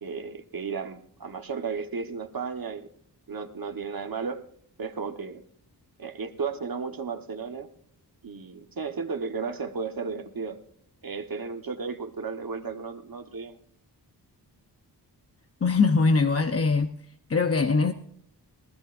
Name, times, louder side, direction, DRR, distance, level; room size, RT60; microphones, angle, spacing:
voice 1, 0.0-2.9 3.3-4.5 4.8-5.4 6.0-7.7 8.2-10.6 11.0-13.6, right 5 dB, 55° right, 1.3 m, -34 dB
voice 2, 15.6-16.9 17.3-17.9, left 4 dB, 35° left, 0.8 m, -22 dB
23.0 x 14.0 x 2.6 m
wide cardioid pair, 75°, 41 cm